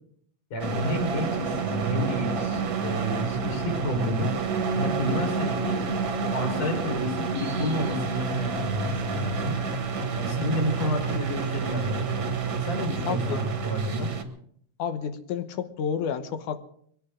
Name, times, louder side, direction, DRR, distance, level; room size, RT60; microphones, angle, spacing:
voice 1, 0.5-4.3 4.7-5.8 6.2-9.6 10.1-12.3 12.6-14.1, equal, 55° left, 2 dB, 5.5 m, -30 dB
sound 1, 0.6-14.2, right 5 dB, 45° right, 1.9 m, -29 dB
sound 2, 4.5-14.2, right 2 dB, 65° right, 2.1 m, -37 dB
voice 2, 13.1-13.4 14.8-16.6, left 7 dB, 85° left, 9 dB, 2.6 m, -30 dB
22.0 x 16.5 x 3.8 m, 0.63 s
omnidirectional pair, 3.5 m